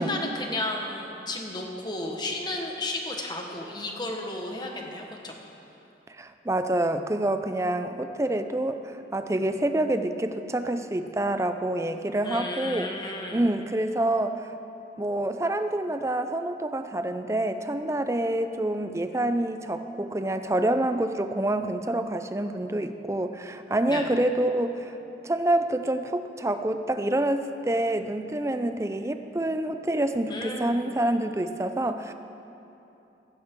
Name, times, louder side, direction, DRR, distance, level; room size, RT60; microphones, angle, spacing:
voice 1, 0.0-5.3 12.2-13.4 23.9-24.1 30.3-30.8, left 2 dB, 25° left, 1 dB, 1.4 m, -33 dB
voice 2, 6.1-12.9 13.3-14.5 15.0-25.0 25.2-32.1, right 1 dB, 15° right, 8 dB, 0.5 m, -27 dB
16.0 x 15.5 x 3.8 m, 2.9 s
head